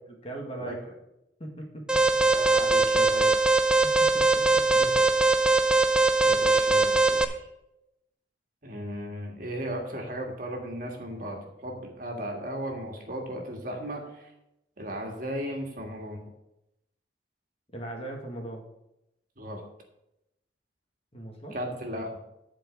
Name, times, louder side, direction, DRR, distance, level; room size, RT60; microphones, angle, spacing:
voice 1, 0.2-0.9 1.4-1.9 3.8-5.1 17.7-18.7 21.1-21.6, right 1 dB, 35° left, 0 dB, 1.8 m, -39 dB
Alarm, 1.9-7.2, right 3 dB, 5° right, 0.5 m, -21 dB
voice 2, 2.2-3.4 6.2-7.4 8.6-14.3 14.8-16.2 19.4-19.6 21.5-22.2, equal, 50° right, 1 dB, 1.9 m, -36 dB
11.5 x 4.7 x 6.2 m, 0.85 s
head